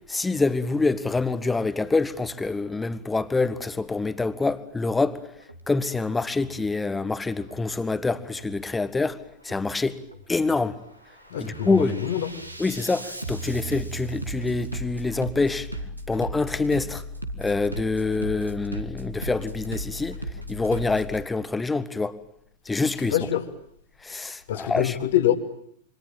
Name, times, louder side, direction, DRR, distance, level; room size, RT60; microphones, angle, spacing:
voice 1, 0.1-5.2 5.7-9.2 9.4-10.0 10.3-10.8 11.4-12.0 12.6-15.7 16.1-17.0 17.4-20.2 20.5-22.2 22.6-23.2 24.0-25.0, left 3 dB, 10° left, 1.5 m, -26 dB
Bass drum, 5.4-5.6 6.1-6.6 7.4-7.6 8.1-8.6 9.4-9.6 10.1-10.6 11.0-21.2, right 1 dB, 85° right, 2.3 m, -36 dB
voice 2, 11.3-12.3 23.1-23.4 24.5-25.4, left 12 dB, 60° left, 2.3 m, -24 dB
27.5 x 24.5 x 8.7 m
figure-of-eight pair, 90°, 0 cm